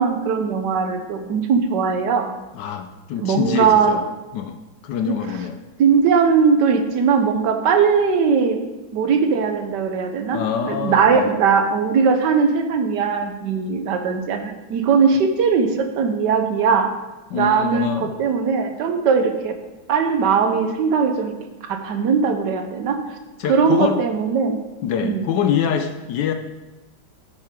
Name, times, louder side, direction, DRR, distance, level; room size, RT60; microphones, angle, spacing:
voice 1, 0.0-2.3 3.2-4.0 5.0-5.2 5.8-8.6 8.9-10.4 10.6-16.9 17.3-19.6 19.9-21.3 21.7-23.0 23.5-24.6 25.0-25.2, right 6 dB, 65° right, 6 dB, 1.4 m, -19 dB
voice 2, 2.5-4.0 4.3-4.6 4.8-5.6 10.3-11.3 17.3-18.1 23.4-24.0 24.8-26.3, left 8 dB, 70° left, 7 dB, 1.1 m, -25 dB
11.5 x 6.4 x 3.7 m, 1.1 s
omnidirectional pair, 2.2 m